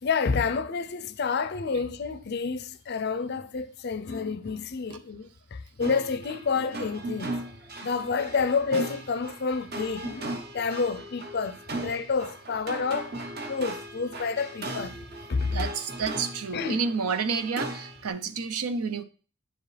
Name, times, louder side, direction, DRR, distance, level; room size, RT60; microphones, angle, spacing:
voice 1, 0.0-7.3 7.8-13.1 13.5-15.0 15.3-15.7 16.5-16.8, left 5 dB, 45° left, 0.4 m, -29 dB
sound 1, 5.8-18.1, right 1 dB, 45° right, 0.9 m, -38 dB
voice 2, 15.5-19.0, right 5 dB, 85° right, 0.7 m, -30 dB
9.8 x 4.9 x 3.3 m
head